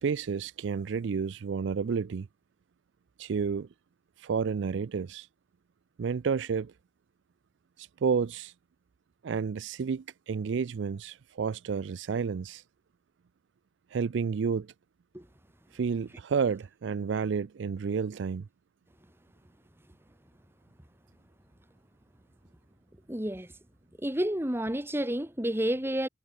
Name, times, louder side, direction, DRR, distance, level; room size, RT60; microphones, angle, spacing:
voice 1, 0.0-2.3 3.2-3.7 4.2-5.3 6.0-6.7 7.8-8.5 9.2-12.6 13.9-14.7 15.7-18.5, right 6 dB, 65° right, 0.4 m, -30 dB
voice 2, 23.1-23.5 24.0-26.1, right 1 dB, 10° right, 1.9 m, -30 dB
head